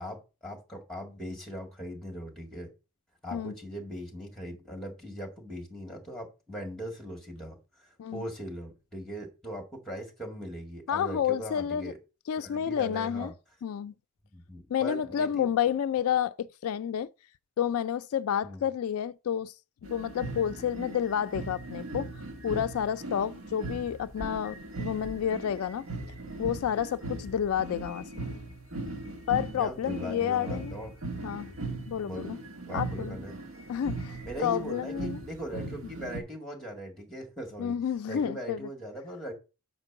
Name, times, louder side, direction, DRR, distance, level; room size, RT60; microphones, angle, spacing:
voice 1, 0.0-2.7 3.2-12.0 12.4-13.3 14.3-15.5 18.4-18.6 29.5-30.9 31.5-31.6 31.9-32.4 32.7-33.4 34.2-37.8 38.1-39.3, equal, ahead, 1.9 m, -40 dB
voice 2, 10.9-11.9 12.3-13.3 13.6-13.9 14.7-17.1 17.6-19.5 19.8-22.1 22.4-25.9 26.4-28.1 29.3-30.8 31.2-31.5 31.9-32.4 32.7-33.2 33.7-35.2 37.6-38.7, left 9 dB, 75° left, 0.3 m, -30 dB
sound 1, 19.8-36.2, right 2 dB, 70° right, 1.3 m, -39 dB
6.6 x 4.5 x 5.8 m
head